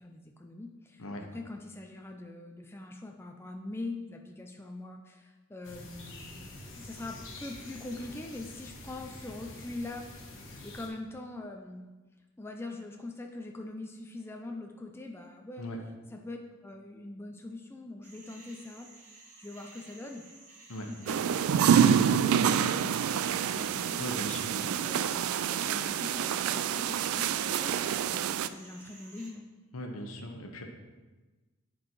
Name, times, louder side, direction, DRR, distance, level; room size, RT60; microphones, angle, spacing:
voice 1, 0.0-11.9 12.4-15.7 16.1-16.4 16.6-18.9 19.4-20.2 20.9-24.0 24.5-25.2 25.5-29.5, left 2 dB, 10° left, 2 dB, 0.4 m, -43 dB
sound 1, 5.6-10.9, left 2 dB, 60° left, 1.3 m, -46 dB
sound 2, 18.0-29.3, right 3 dB, 35° right, 1.1 m, -53 dB
sound 3, 21.1-28.5, right 8 dB, 85° right, 0.3 m, -27 dB
voice 2, 24.0-24.5 29.7-30.6, left 1 dB, 85° left, 3 dB, 1.0 m, -38 dB
8.6 x 4.5 x 4.5 m, 1.2 s
head